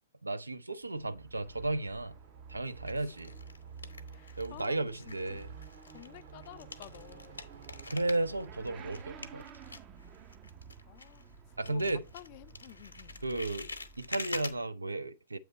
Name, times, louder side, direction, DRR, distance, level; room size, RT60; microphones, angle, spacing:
voice 1, 0.2-2.2 2.5-3.4 4.4-5.5 7.9-9.4 11.6-12.0 13.2-13.7 14.0-15.4, right 2 dB, 85° right, 0.4 m, -34 dB
Motorcycle / Accelerating revving vroom, 0.8-14.7, right 6 dB, 30° right, 0.5 m, -51 dB
sound 1, 1.7-2.3 2.9-4.7 5.0-11.4 11.6-14.5, left 3 dB, 85° left, 0.8 m, -45 dB
sound 2, 1.9-8.5, right 5 dB, 65° right, 1.8 m, -59 dB
voice 2, 4.1-5.4 5.9-7.4 10.9-11.3 11.7-13.2, left 14 dB, 45° left, 0.3 m, -51 dB
7.8 x 3.1 x 5.1 m
figure-of-eight pair, 115°, 0 cm